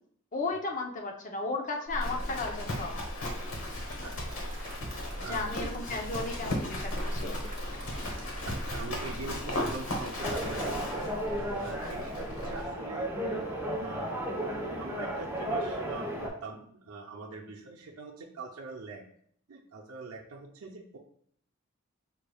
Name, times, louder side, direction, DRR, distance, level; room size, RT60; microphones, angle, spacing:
voice 1, 0.3-2.9 5.2-7.5, left 3 dB, 40° left, 2 dB, 0.7 m, -35 dB
Livestock farm animals working animals, 1.9-12.7, left 1 dB, 80° left, 1.1 m, -36 dB
Applause / Crowd, 3.4-11.4, right 1 dB, 40° right, 1.3 m, -52 dB
voice 2, 5.2-5.7 8.3-13.1 13.8-14.1 14.8-19.0 19.5-21.0, right 3 dB, 80° right, -1 dB, 0.6 m, -43 dB
sound 1, 10.2-16.3, right 1 dB, 10° right, 0.8 m, -34 dB
5.5 x 3.4 x 2.3 m, 0.64 s
head